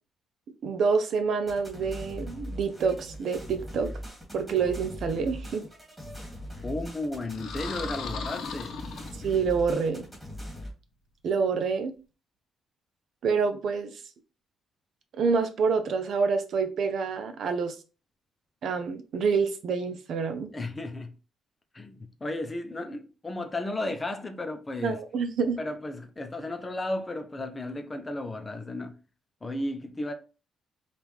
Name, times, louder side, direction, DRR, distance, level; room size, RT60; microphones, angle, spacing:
voice 1, 0.6-3.9 4.3-5.6 9.2-10.1 11.2-11.9 13.2-14.0 15.1-17.8 18.6-20.5 24.8-25.6, right 5 dB, 65° right, 0.6 m, -27 dB
sound 1, 1.5-10.7, equal, 5° right, 2.0 m, -40 dB
voice 2, 6.6-8.8 20.5-21.1 21.7-25.0 25.6-29.0 29.4-30.1, left 2 dB, 20° left, 0.6 m, -34 dB
sound 2, 7.3-9.6, left 6 dB, 85° left, 0.8 m, -38 dB
5.1 x 2.5 x 3.1 m
cardioid pair, 110°, 0 cm